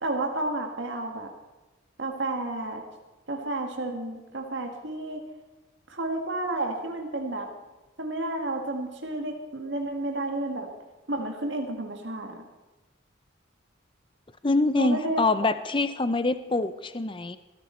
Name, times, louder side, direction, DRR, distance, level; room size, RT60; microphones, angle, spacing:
voice 1, 0.0-1.3 2.0-2.8 3.3-5.2 5.9-7.5 8.0-10.7 11.1-12.4 14.7-15.5, right 2 dB, 65° right, 3 dB, 1.7 m, -31 dB
voice 2, 14.4-17.4, left 2 dB, 25° left, 12 dB, 0.6 m, -25 dB
21.5 x 13.5 x 4.4 m, 1.1 s
head